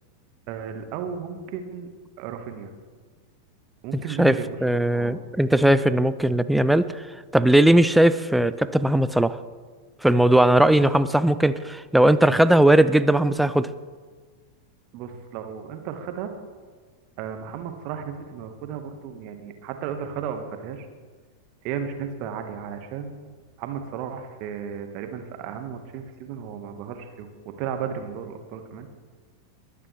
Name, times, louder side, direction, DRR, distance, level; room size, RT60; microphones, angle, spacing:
voice 1, 0.5-1.9 2.2-2.7 3.8-4.5 4.9-5.2 14.9-16.3 17.2-20.9 21.6-23.1 23.6-28.9, right 7 dB, 45° right, 7 dB, 1.6 m, -34 dB
voice 2, 4.2-6.9 7.3-9.4 10.0-13.7, right 1 dB, 5° right, 14 dB, 0.5 m, -18 dB
21.0 x 9.8 x 3.4 m, 1.5 s
figure-of-eight pair, 90°, 0 cm